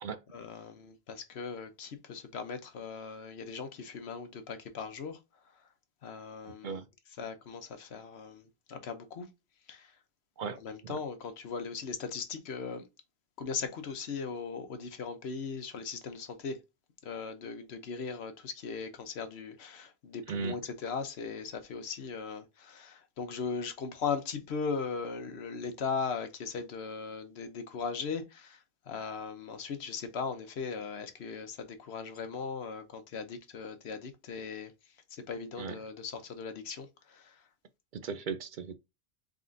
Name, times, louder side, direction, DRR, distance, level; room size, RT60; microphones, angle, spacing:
voice 1, 0.3-5.2 6.0-6.8 7.2-9.3 9.7-9.9 10.6-12.8 13.4-16.6 17.0-34.7 35.1-37.4, left 5 dB, 85° left, 1.1 m, -38 dB
voice 2, 10.4-11.0 20.3-20.6 35.6-35.8 37.9-38.7, right 5 dB, 60° right, 0.6 m, -37 dB
4.0 x 3.7 x 2.6 m
omnidirectional pair, 1.1 m